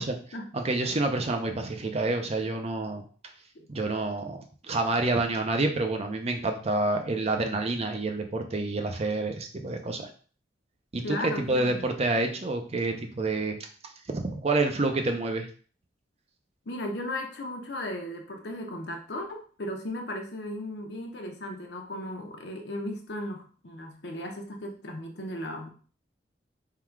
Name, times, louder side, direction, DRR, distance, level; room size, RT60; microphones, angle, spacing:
voice 1, 0.5-3.0 3.7-10.1 10.9-13.7 14.1-15.5, right 2 dB, 35° right, 5 dB, 0.6 m, -28 dB
voice 2, 11.0-11.9 16.7-25.7, left 1 dB, 70° left, 3 dB, 0.8 m, -36 dB
3.8 x 2.4 x 4.5 m, 0.41 s
head